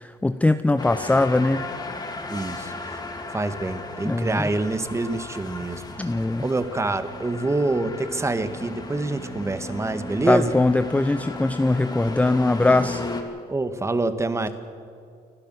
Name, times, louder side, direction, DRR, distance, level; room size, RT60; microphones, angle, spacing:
voice 1, 0.0-1.7 4.0-4.5 6.0-6.5 10.3-13.0, left 2 dB, 10° left, 11 dB, 0.6 m, -21 dB
sound 1, 0.8-13.2, left 3 dB, 25° left, 2.7 m, -35 dB
voice 2, 2.3-3.0 3.3-5.8 6.1-10.5 13.5-14.5, right 2 dB, 15° right, 11 dB, 1.5 m, -26 dB
29.5 x 11.5 x 7.7 m, 2.4 s
cardioid pair, 110°, 17 cm